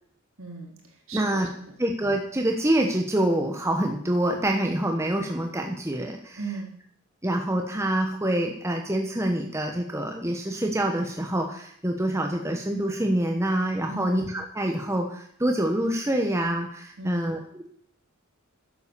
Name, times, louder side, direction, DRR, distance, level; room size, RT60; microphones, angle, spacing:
voice 1, 0.4-1.4 6.4-6.7 13.9-14.2 17.0-17.3, right 3 dB, 65° right, 1 dB, 3.6 m, -37 dB
voice 2, 1.1-1.5 1.8-6.4 7.2-17.7, right 1 dB, 10° right, 2 dB, 1.1 m, -26 dB
11.0 x 7.9 x 7.0 m, 0.65 s
head